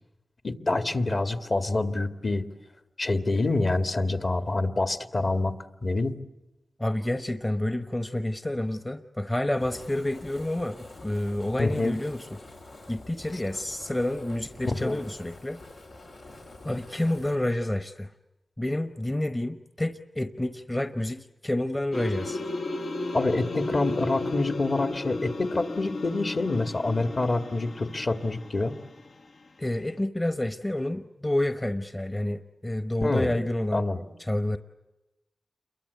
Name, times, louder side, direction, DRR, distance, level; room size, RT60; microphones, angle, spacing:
voice 1, 0.4-2.5 3.0-5.6 5.8-6.2 11.6-12.0 14.6-15.0 23.1-28.8 33.0-33.4 33.7-34.0, left 2 dB, 50° left, 8 dB, 2.0 m, -26 dB
voice 2, 6.8-12.4 12.9-15.6 16.6-18.1 18.6-22.4 29.6-33.8 34.2-34.6, left 1 dB, 20° left, 9 dB, 1.0 m, -29 dB
Fire, 9.5-17.4, left 2 dB, 90° left, 4.6 m, -47 dB
sound 1, 21.9-29.1, left 2 dB, 70° left, 1.0 m, -34 dB
29.0 x 23.0 x 8.2 m, 1.0 s
wide cardioid pair, 80°, 0 cm